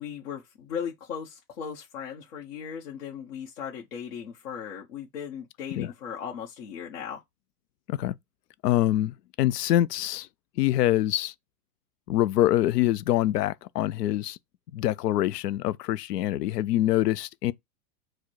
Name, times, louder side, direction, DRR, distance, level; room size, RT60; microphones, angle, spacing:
voice 1, 0.0-7.2, left 7 dB, 55° left, 1.0 m, -37 dB
voice 2, 8.6-10.3 10.6-11.3 12.1-14.4 14.7-17.5, left 14 dB, 90° left, 0.5 m, -25 dB
4.6 x 2.2 x 4.5 m
supercardioid pair, 160°, 46 cm